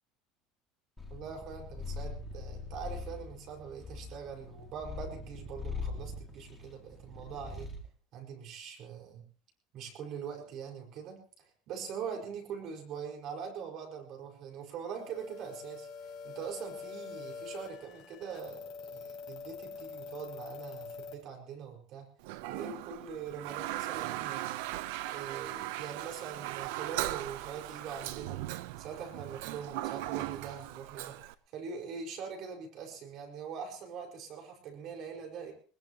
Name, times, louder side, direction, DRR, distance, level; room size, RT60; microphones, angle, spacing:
Purr, 1.0-7.9, left 4 dB, 10° left, 2.4 m, -42 dB
voice 1, 1.1-7.7 8.1-9.2 9.7-22.1 22.5-24.7 25.1-28.4 28.8-31.2 31.5-35.5, right 7 dB, 45° right, 2 dB, 5.1 m, -43 dB
sound 1, 15.0-21.1, left 5 dB, 45° left, 5.8 m, -45 dB
Toilet flush, 22.2-31.3, right 15 dB, 80° right, 0.7 m, -38 dB
21.0 x 21.0 x 3.0 m, 0.42 s
cardioid pair, 165°, 0 cm